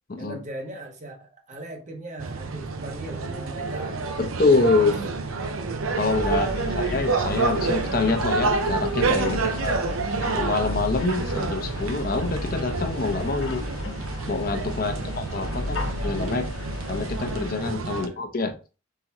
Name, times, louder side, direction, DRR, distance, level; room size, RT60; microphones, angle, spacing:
voice 1, 0.2-4.0 4.9-5.1 6.4-7.0 9.3-9.6 14.7-15.4 17.9-18.2, right 1 dB, 35° right, 0.8 m, -39 dB
sound 1, 2.2-18.1, right 4 dB, 90° right, 0.6 m, -29 dB
voice 2, 4.2-4.9 5.9-9.8 10.3-13.6 14.3-16.5 16.9-18.5, left 3 dB, 45° left, 0.6 m, -26 dB
sound 2, 6.0-17.5, left 2 dB, 70° left, 1.0 m, -34 dB
4.1 x 3.8 x 3.0 m
head